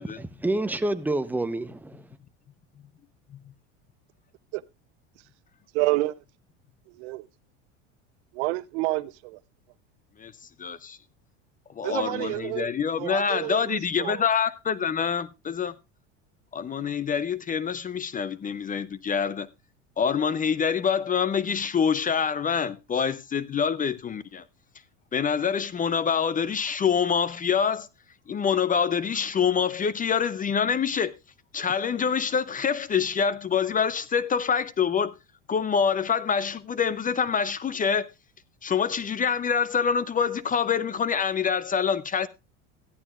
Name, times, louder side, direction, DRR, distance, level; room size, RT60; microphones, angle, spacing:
voice 1, 0.0-2.1, right 2 dB, 5° right, 0.8 m, -28 dB
voice 2, 5.7-6.2 6.9-7.3 8.3-9.4 11.8-12.7 13.0-14.2, right 21 dB, 75° right, 0.7 m, -29 dB
voice 3, 10.6-11.0 11.7-15.7 16.5-19.5 20.0-24.4 25.1-27.9 28.3-31.1 31.5-35.1 35.5-38.1 38.6-42.3, left 6 dB, 25° left, 0.6 m, -26 dB
14.5 x 11.0 x 2.4 m
supercardioid pair, 95°, 35 cm